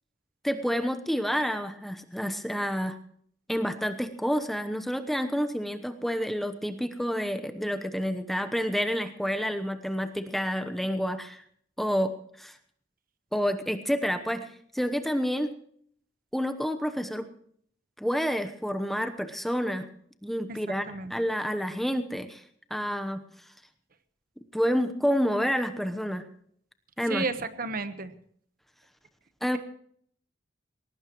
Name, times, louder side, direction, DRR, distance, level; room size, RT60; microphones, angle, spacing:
voice 1, 0.4-3.0 3.5-11.4 11.8-12.1 12.4-12.5 13.3-14.5 14.7-15.5 16.3-17.3 18.0-19.8 20.2-22.4 22.7-23.2 24.5-26.2 27.0-27.2 29.4-29.6, equal, ahead, 8 dB, 0.9 m, -29 dB
voice 2, 27.1-28.1, right 3 dB, 50° right, 11 dB, 1.2 m, -32 dB
20.5 x 18.5 x 3.1 m, 0.63 s
head